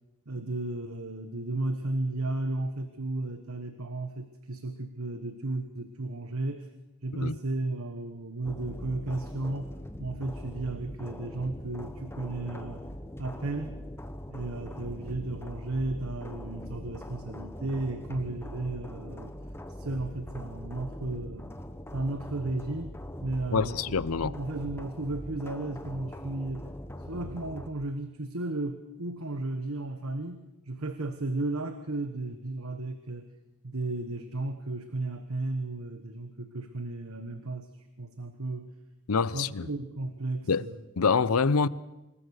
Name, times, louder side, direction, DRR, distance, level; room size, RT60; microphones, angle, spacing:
voice 1, 0.3-6.7 7.0-9.7 10.0-12.9 13.2-13.7 14.3-19.3 19.8-21.5 21.9-23.8 24.2-26.7 27.1-33.3 33.6-37.7 38.0-38.7 39.3-40.8, right 2 dB, 80° right, 1.3 m, -34 dB
sound 1, 8.4-27.7, equal, 10° left, 1.1 m, -42 dB
voice 2, 23.5-24.4 39.1-39.7 40.5-40.7 41.0-41.7, left 5 dB, 85° left, 0.7 m, -26 dB
26.0 x 21.0 x 6.5 m
head